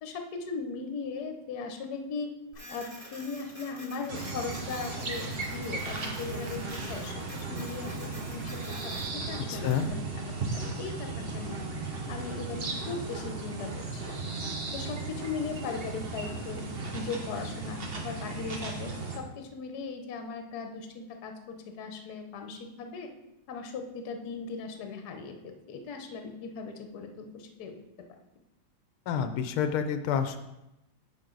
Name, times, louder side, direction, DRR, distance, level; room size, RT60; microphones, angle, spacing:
voice 1, 0.0-2.3 2.7-10.0 10.3-11.6 12.1-14.2 14.7-16.6 16.9-23.1 23.5-27.7, left 4 dB, 55° left, 5 dB, 1.3 m, -38 dB
Printer, 2.5-9.9, equal, 10° right, 1.9 m, -48 dB
sound 1, 4.1-19.2, right 3 dB, 45° right, 0.8 m, -36 dB
voice 2, 9.5-9.9 29.1-30.4, left 8 dB, 85° left, 9 dB, 1.5 m, -28 dB
9.1 x 6.3 x 3.9 m, 0.90 s
omnidirectional pair, 2.3 m